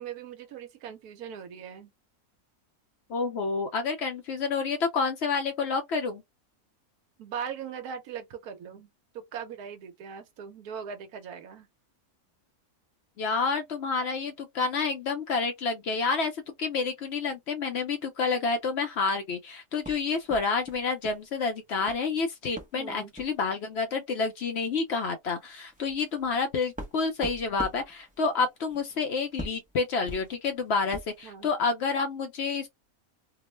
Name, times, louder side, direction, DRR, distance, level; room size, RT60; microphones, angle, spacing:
voice 1, 0.0-1.9 7.2-8.9 9.1-11.7 22.8-23.1 31.2-31.5, right 7 dB, 80° right, 1.2 m, -40 dB
voice 2, 3.1-6.2 13.2-32.7, left 4 dB, 60° left, 0.7 m, -29 dB
sound 1, 19.8-21.3 21.5-22.1 22.6-22.8 23.1-23.4 24.3-24.4 24.7-24.9 25.4-31.2, equal, 15° right, 0.3 m, -43 dB
2.9 x 2.0 x 3.1 m
omnidirectional pair, 1.6 m